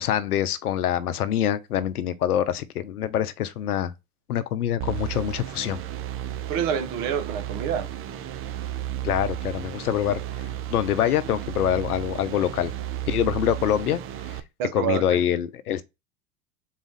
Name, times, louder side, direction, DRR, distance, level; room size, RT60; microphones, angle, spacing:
voice 1, 0.0-3.9 4.3-5.8 9.0-10.2 10.7-12.7 13.1-14.0 14.7-15.8, left 10 dB, 85° left, 0.6 m, -25 dB
sound 1, 4.8-14.4, right 12 dB, 30° right, 0.5 m, -33 dB
voice 2, 6.5-7.9 14.6-15.2, right 8 dB, 50° right, 1.0 m, -27 dB
4.0 x 2.4 x 3.9 m
hypercardioid pair, 90°, 44 cm